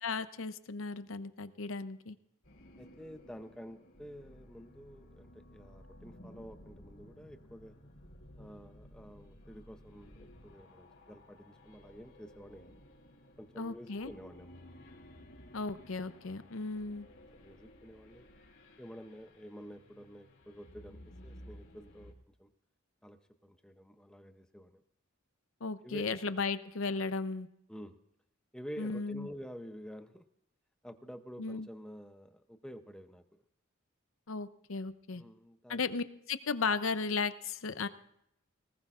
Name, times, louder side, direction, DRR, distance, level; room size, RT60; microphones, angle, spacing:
voice 1, 0.0-2.2 13.6-14.1 15.5-17.1 25.6-27.5 28.8-29.3 31.4-31.7 34.3-35.2 35.7-37.9, left 4 dB, 70° left, 12 dB, 0.7 m, -35 dB
sound 1, 2.4-22.1, left 1 dB, 90° left, 2.9 m, -57 dB
voice 2, 2.8-7.7 8.4-12.7 13.4-14.5 17.3-18.3 18.8-22.5 23.0-24.8 25.8-26.2 27.7-28.0 28.5-30.3 30.8-33.4 35.1-35.8, equal, 5° left, 8 dB, 0.6 m, -49 dB
sound 2, 3.9-10.6, equal, 45° left, 1.4 m, -58 dB
19.5 x 19.0 x 2.5 m, 0.75 s
head